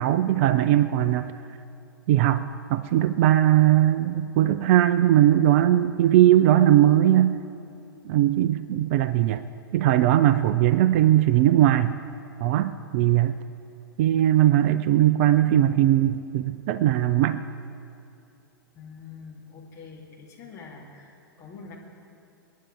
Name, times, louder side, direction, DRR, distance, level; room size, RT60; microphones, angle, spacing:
voice 1, 0.0-1.3 2.1-7.4 8.1-9.4 9.7-12.0 12.4-13.3 14.0-17.4, right 12 dB, 35° right, 13 dB, 0.4 m, -20 dB
voice 2, 18.7-21.7, left 5 dB, 25° left, -3 dB, 3.0 m, -45 dB
26.5 x 10.5 x 3.5 m, 2.7 s
figure-of-eight pair, 105°, 12 cm